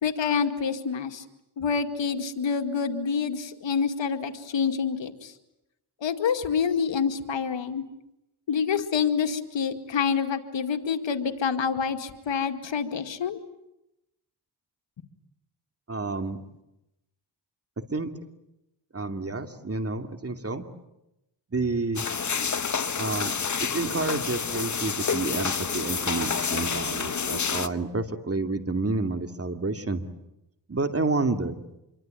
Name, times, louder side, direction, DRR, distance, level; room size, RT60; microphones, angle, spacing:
voice 1, 0.0-1.2 1.6-5.3 6.0-7.8 8.5-13.4, left 6 dB, 80° left, 7 dB, 2.2 m, -27 dB
voice 2, 15.9-16.4 17.8-18.1 18.9-20.7 21.5-22.1 23.0-23.3 23.6-30.0 30.7-31.6, right 3 dB, 30° right, 7 dB, 2.7 m, -29 dB
sound 1, 22.0-27.7, left 6 dB, 40° left, 1.2 m, -29 dB
26.5 x 24.0 x 9.2 m, 0.89 s
cardioid pair, 65°, 44 cm